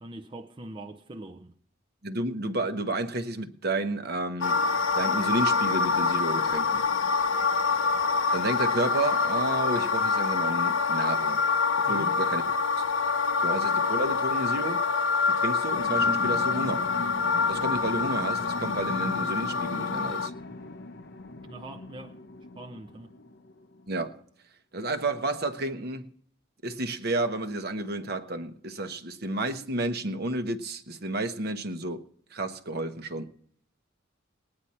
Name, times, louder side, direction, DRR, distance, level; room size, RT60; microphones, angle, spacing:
voice 1, 0.0-1.5 11.9-12.2 21.4-22.2 22.6-23.2, right 2 dB, 25° right, 0.6 m, -42 dB
voice 2, 2.0-4.6 4.9-6.8 8.3-11.4 11.8-12.5 13.4-14.8 15.3-16.8 17.5-20.3 23.9-24.2 24.7-26.1 26.6-32.0 32.3-33.3, right 2 dB, 50° right, 1.0 m, -31 dB
sound 1, 4.4-20.3, left 4 dB, 75° left, 0.6 m, -26 dB
sound 2, 15.7-23.9, left 2 dB, 55° left, 0.9 m, -40 dB
19.0 x 9.7 x 4.3 m
head